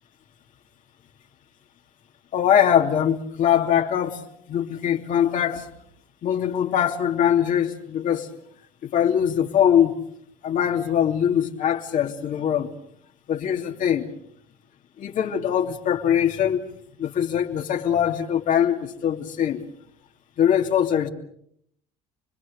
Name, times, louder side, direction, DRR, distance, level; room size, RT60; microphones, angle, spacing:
voice 1, 2.3-4.2 4.5-5.7 6.2-8.3 8.8-10.0 10.4-12.7 13.3-14.1 15.0-16.7 17.0-19.6 20.4-21.1, left 9 dB, 55° left, 2.9 m, -22 dB
30.0 x 21.0 x 6.7 m
supercardioid pair, 85°, 15 cm